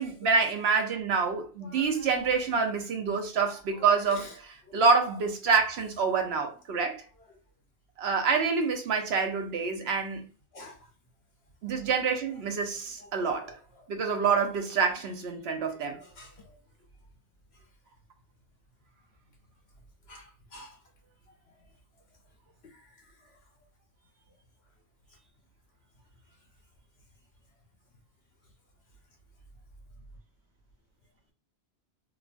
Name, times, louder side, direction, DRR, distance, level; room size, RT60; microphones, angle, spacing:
voice 1, 0.0-7.0 8.0-10.2 11.6-13.5 13.9-16.0, right 5 dB, 75° right, 0.9 m, -27 dB
voice 2, 1.6-2.3 3.4-4.3 10.5-10.9 11.7-11.8 13.0-13.9 15.9-16.6 20.1-20.8 22.6-22.9 23.2-23.3, left 1 dB, 70° left, 1.2 m, -49 dB
3.0 x 2.4 x 2.4 m
omnidirectional pair, 1.1 m